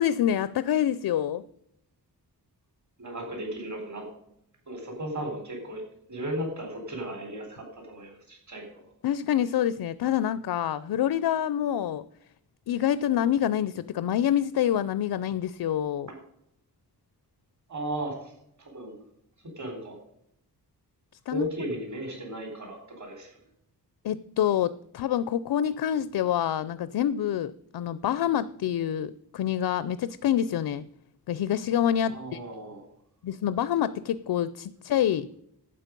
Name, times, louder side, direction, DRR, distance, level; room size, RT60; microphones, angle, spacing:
voice 1, 0.0-1.4 9.0-12.0 12.7-16.1 21.3-21.5 24.0-30.8 31.3-32.4 33.2-35.3, left 10 dB, 75° left, 16 dB, 0.6 m, -26 dB
voice 2, 3.0-4.0 4.7-5.8 6.1-8.8 16.1-16.2 17.7-18.3 18.6-19.0 19.6-20.0 21.3-23.4 32.0-32.9, right 1 dB, 45° right, 3 dB, 4.0 m, -35 dB
12.0 x 8.5 x 5.3 m, 0.75 s
wide cardioid pair, 160°, 39 cm